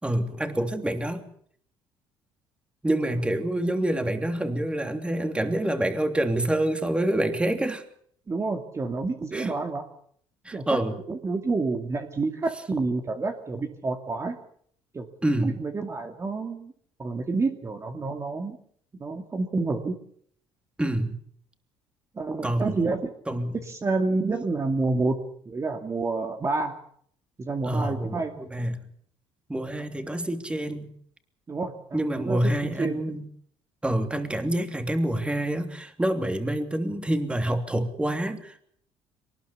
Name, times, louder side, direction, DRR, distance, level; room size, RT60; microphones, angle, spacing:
voice 1, 0.0-1.3 2.8-7.8 9.3-9.5 10.4-11.0 15.2-15.5 20.8-21.2 22.4-22.8 23.3-23.7 27.6-28.9 29.5-30.9 31.9-33.3 33.8-38.7, right 1 dB, 10° right, 7 dB, 3.1 m, -27 dB
voice 2, 8.3-9.8 10.5-10.8 11.1-14.4 14.9-15.1 15.4-16.7 17.0-18.6 19.0-20.0 22.2-23.0 23.6-25.2 25.5-26.7 27.4-28.3 31.5-32.5 32.8-33.0, right 3 dB, 30° right, 5 dB, 2.4 m, -28 dB
23.5 x 19.5 x 7.1 m, 0.63 s
cardioid pair, 95°, 11 cm